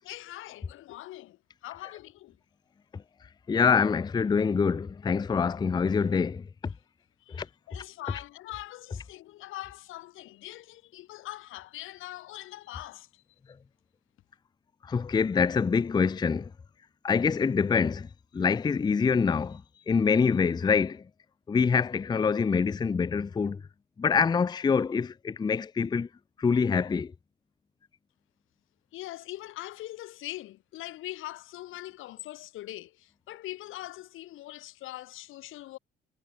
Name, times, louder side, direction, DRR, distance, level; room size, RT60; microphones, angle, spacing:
voice 1, 0.0-2.4 7.3-13.2 28.9-35.8, left 16 dB, 85° left, 1.6 m, -42 dB
voice 2, 3.5-6.5 7.3-7.5 14.9-16.5 17.0-18.1 18.3-19.6 19.9-21.0 21.5-23.6 24.0-26.1 26.4-27.1, left 5 dB, 20° left, 0.4 m, -25 dB
cardioid pair, 90°, 20 cm